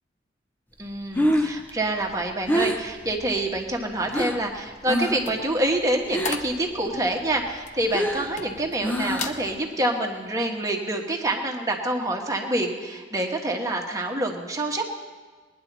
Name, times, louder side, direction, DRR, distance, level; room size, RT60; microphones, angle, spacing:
voice 1, 0.8-14.8, right 1 dB, 20° right, 1 dB, 1.4 m, -27 dB
Breathing, 0.9-4.5 4.8-5.3 5.6-6.6 6.9-9.5, equal, 10° left, 0.8 m, -27 dB
sound 1, 5.0-8.8 9.1-9.4 9.9-10.2, left 5 dB, 40° left, 0.8 m, -37 dB
21.0 x 10.5 x 4.1 m, 1.5 s
head